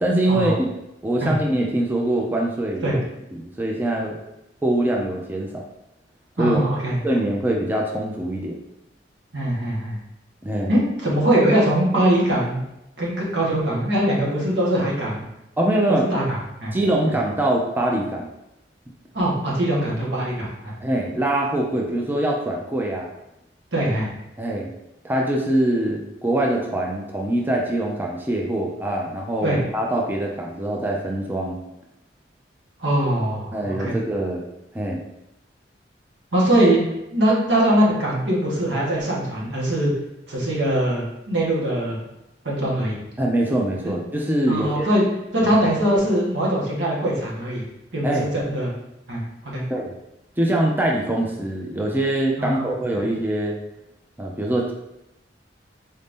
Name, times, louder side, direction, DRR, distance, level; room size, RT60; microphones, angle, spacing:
voice 1, 0.0-0.7 1.0-3.0 3.3-4.2 4.6-5.6 6.4-6.6 7.0-8.6 10.4-10.8 15.6-16.1 16.7-18.3 20.8-23.1 24.4-24.7 25.0-31.6 33.5-34.4 34.7-35.0 43.2-44.9 45.4-45.5 48.0-48.3 49.7-49.9 50.4-53.6 54.2-54.7, right 1 dB, 10° right, -1 dB, 0.4 m, -23 dB
voice 2, 6.4-7.0 9.3-10.0 10.7-12.6 13.0-15.2 15.9-16.7 19.1-20.7 23.7-24.1 29.4-29.6 32.8-34.0 36.3-39.9 40.3-42.0 42.4-43.0 43.8-43.9 44.5-45.1 45.3-47.6 47.9-48.7 49.1-49.6 52.4-52.7 53.0-53.1, right 1 dB, 90° right, -5 dB, 1.3 m, -22 dB
4.2 x 2.6 x 3.5 m, 0.88 s
head